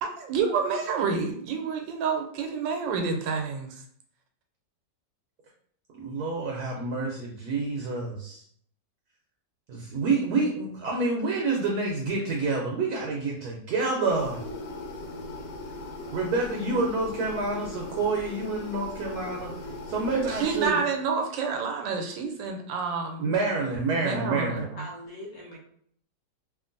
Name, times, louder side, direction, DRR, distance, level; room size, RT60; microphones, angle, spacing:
voice 1, 0.0-3.8 20.3-23.3 24.0-24.8, right 5 dB, 85° right, 3 dB, 1.3 m, -29 dB
voice 2, 5.9-8.4 9.7-14.4 16.1-19.5 19.9-20.8 23.2-24.7, right 3 dB, 70° right, -1 dB, 1.0 m, -28 dB
sound 1, 14.1-20.7, left 2 dB, 80° left, 1.3 m, -39 dB
voice 3, 24.7-25.6, left 1 dB, 55° left, -3 dB, 0.9 m, -41 dB
2.9 x 2.5 x 2.5 m, 0.63 s
omnidirectional pair, 1.9 m